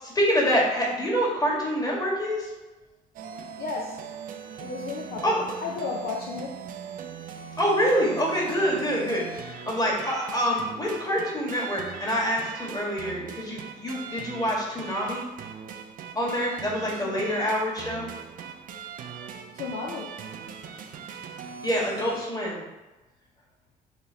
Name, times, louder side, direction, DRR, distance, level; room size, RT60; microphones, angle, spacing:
voice 1, 0.0-2.5 5.2-5.4 7.6-15.2 16.1-18.1 21.6-22.7, equal, 20° left, -4 dB, 1.5 m, -26 dB
sound 1, 3.1-22.3, right 7 dB, 55° right, 0.4 m, -40 dB
voice 2, 3.6-4.0 4.6-6.5 17.0-17.4 19.5-20.1, left 4 dB, 70° left, -3 dB, 0.6 m, -34 dB
3.0 x 2.8 x 3.8 m, 1.1 s
supercardioid pair, 65°, 17 cm